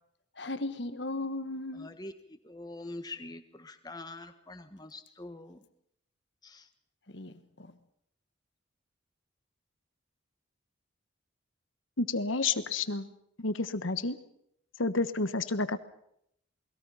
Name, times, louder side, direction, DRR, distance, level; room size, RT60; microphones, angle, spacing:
voice 1, 0.4-1.9 7.1-7.7, left 2 dB, 55° left, 1.5 m, -37 dB
voice 2, 1.7-5.6 6.4-6.7, left 2 dB, 20° left, 1.5 m, -44 dB
voice 3, 12.0-13.1 13.4-14.2 14.8-15.8, left 3 dB, 80° left, 1.3 m, -30 dB
28.0 x 21.0 x 5.7 m
head